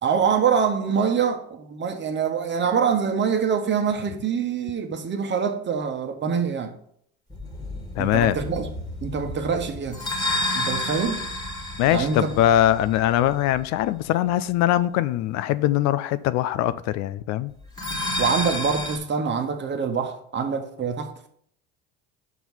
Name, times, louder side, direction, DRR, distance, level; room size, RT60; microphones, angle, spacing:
voice 1, 0.0-6.7 8.0-8.7 9.0-10.0 10.5-11.2 11.9-12.3 18.2-21.3, right 6 dB, 35° right, 1.2 m, -25 dB
sound 1, 7.3-13.9 17.6-19.0, left 1 dB, 10° left, 1.7 m, -31 dB
voice 2, 8.0-8.4 11.8-17.5, left 12 dB, 60° left, 0.4 m, -22 dB
6.0 x 4.6 x 5.5 m
hypercardioid pair, 75°, 32 cm